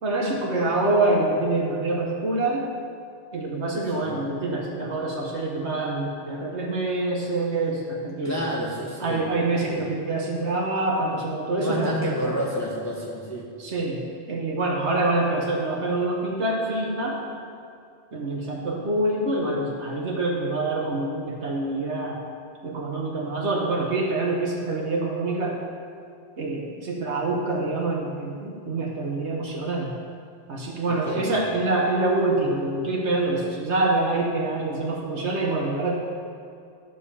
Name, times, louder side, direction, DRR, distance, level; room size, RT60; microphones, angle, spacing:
voice 1, 0.0-2.7 3.3-8.4 9.0-12.3 13.6-14.0 14.3-17.2 18.1-22.2 22.6-25.6 26.4-29.9 30.5-36.0, right 2 dB, 75° right, -2 dB, 1.5 m, -26 dB
voice 2, 8.2-9.2 9.7-9.8 11.6-13.5 30.8-31.3, equal, 15° left, -4 dB, 1.3 m, -29 dB
11.5 x 5.4 x 6.9 m, 2.3 s
omnidirectional pair, 1.2 m